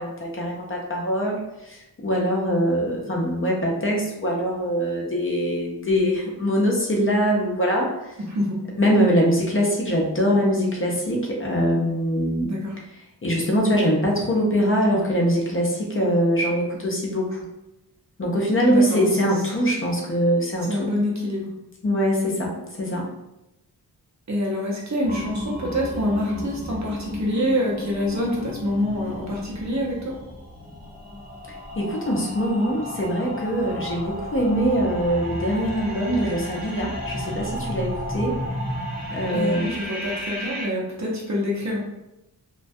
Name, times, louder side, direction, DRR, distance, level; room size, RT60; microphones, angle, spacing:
voice 1, 0.0-8.2 8.8-12.5 13.2-17.5 18.2-20.9 21.8-23.1 31.8-38.4 39.1-39.7, equal, 35° left, -2 dB, 0.5 m, -23 dB
voice 2, 8.2-8.6 12.5-12.8 18.7-19.5 20.6-21.5 24.3-30.2 39.3-41.8, equal, 45° right, -3 dB, 0.7 m, -26 dB
sound 1, 25.0-40.7, equal, 20° right, 0.9 m, -33 dB
2.2 x 2.2 x 2.6 m, 0.91 s
wide cardioid pair, 85°, 39 cm